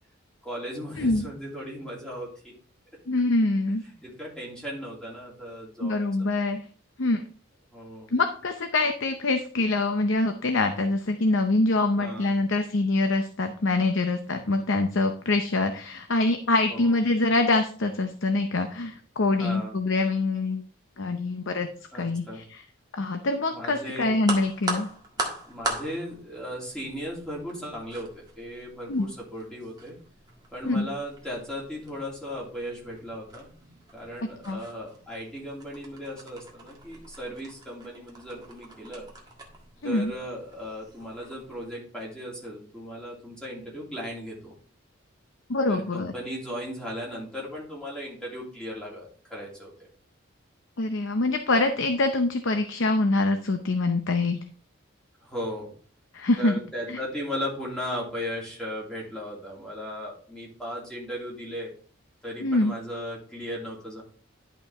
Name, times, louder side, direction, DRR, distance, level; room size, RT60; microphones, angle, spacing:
voice 1, 0.4-2.5 4.0-6.3 7.7-8.1 12.0-12.4 16.7-17.0 19.4-19.8 21.9-22.4 23.5-24.2 25.4-30.0 30.5-33.5 33.9-39.1 39.8-44.5 45.7-49.7 55.2-55.7 56.4-61.7 62.2-64.0, equal, 5° left, -5 dB, 3.0 m, -36 dB
voice 2, 3.1-3.8 5.8-6.6 7.0-7.3 8.1-20.6 21.0-21.7 21.9-22.6 22.9-24.9 28.9-29.1 30.6-30.9 34.4-34.6 39.8-40.1 45.5-46.1 50.8-54.4 56.1-56.6 56.9-57.0 62.4-62.7, left 2 dB, 65° left, 7 dB, 0.7 m, -25 dB
sound 1, 24.2-41.7, right 2 dB, 20° right, 1.7 m, -40 dB
11.0 x 5.4 x 3.6 m, 0.43 s
head